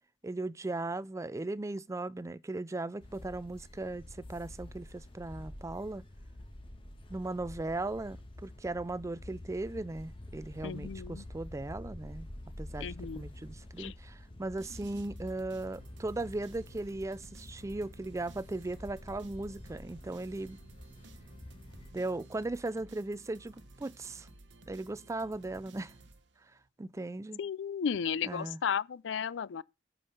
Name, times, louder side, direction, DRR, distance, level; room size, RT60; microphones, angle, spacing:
voice 1, 0.2-6.0 7.1-12.3 12.6-20.6 21.9-24.3 24.7-25.9 26.8-27.4 28.2-28.6, right 2 dB, 15° right, 0.4 m, -37 dB
sound 1, 3.0-21.9, left 1 dB, 30° left, 1.5 m, -48 dB
voice 2, 10.6-11.2 12.8-13.2 13.8-13.9 27.4-29.6, left 7 dB, 75° left, 0.4 m, -34 dB
sound 2, 14.6-26.7, right 2 dB, 70° right, 1.2 m, -54 dB
8.4 x 5.4 x 5.6 m
head